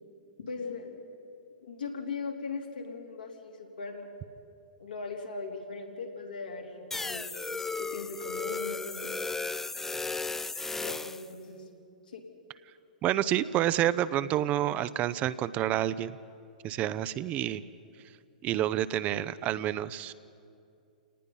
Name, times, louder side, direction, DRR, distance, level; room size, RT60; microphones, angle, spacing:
voice 1, 0.5-1.0 1.6-4.1 4.8-7.3 7.8-9.1 10.8-11.6 12.1-12.2, left 4 dB, 85° left, 0 dB, 3.4 m, -39 dB
sound 1, 6.9-11.3, left 4 dB, 10° left, 0.5 m, -35 dB
voice 2, 13.0-16.1 16.6-17.6 18.4-20.1, right 12 dB, 30° right, 15 dB, 0.6 m, -28 dB
29.0 x 19.0 x 5.5 m, 2.5 s
hypercardioid pair, 115°, 5 cm